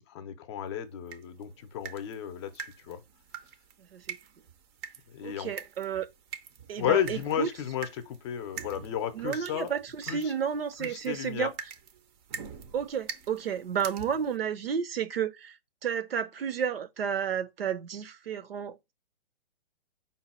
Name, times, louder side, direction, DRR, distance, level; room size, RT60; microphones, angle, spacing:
voice 1, 0.0-3.0 5.1-5.5 6.8-9.7 10.1-10.3 10.8-11.5, left 9 dB, 30° left, 0.6 m, -33 dB
sound 1, 1.1-14.4, right 6 dB, 25° right, 0.5 m, -45 dB
voice 2, 5.2-6.1 6.7-7.5 9.1-11.5 12.7-15.6 15.8-18.9, right 7 dB, 75° right, 0.7 m, -32 dB
5.4 x 2.2 x 4.2 m
hypercardioid pair, 135°, 30 cm